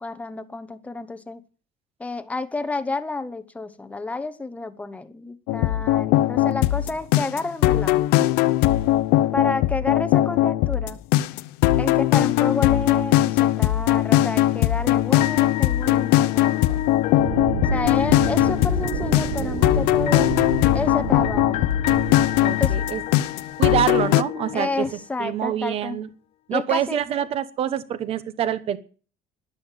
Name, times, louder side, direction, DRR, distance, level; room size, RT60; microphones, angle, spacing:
voice 1, 0.0-1.4 2.0-8.0 9.3-11.0 11.8-16.8 17.7-20.3 20.7-21.6 22.6-22.7 24.5-26.0 26.5-27.0, left 3 dB, 10° left, 12 dB, 0.9 m, -30 dB
sound 1, 5.5-24.2, left 15 dB, 80° left, 0.8 m, -20 dB
sound 2, 15.2-25.2, left 15 dB, 40° left, 0.7 m, -32 dB
sound 3, 17.2-23.5, right 7 dB, 65° right, 2.0 m, -30 dB
voice 2, 22.4-23.0 23.6-24.8 25.2-26.1 26.5-28.8, right 10 dB, 35° right, 14 dB, 1.2 m, -26 dB
11.5 x 11.5 x 9.1 m, 0.40 s
cardioid pair, 180°, 17 cm